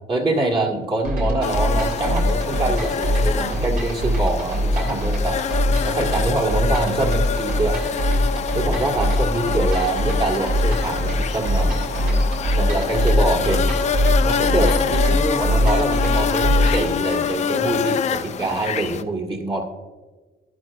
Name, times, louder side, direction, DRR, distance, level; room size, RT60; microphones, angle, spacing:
voice 1, 0.1-5.4 5.8-7.8 8.5-11.8 12.6-13.6 14.2-19.7, right 2 dB, 30° right, 1 dB, 1.9 m, -24 dB
sound 1, 1.0-16.9, equal, 65° right, 3.3 m, -22 dB
sound 2, 1.4-19.0, left 7 dB, 40° left, 0.5 m, -26 dB
12.0 x 11.0 x 2.5 m, 1.3 s
cardioid pair, 110°, 17 cm